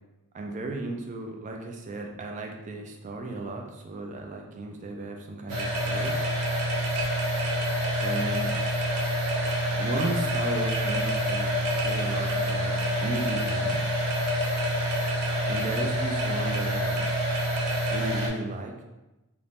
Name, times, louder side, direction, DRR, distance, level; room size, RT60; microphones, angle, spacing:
voice 1, 0.3-6.3 8.0-8.6 9.7-12.8 13.0-14.0 15.5-17.1 17.9-18.8, right 2 dB, 35° right, 2 dB, 0.3 m, -35 dB
sound 1, 5.5-18.3, equal, 80° right, 0.6 m, -27 dB
2.5 x 2.0 x 3.3 m, 1.0 s
head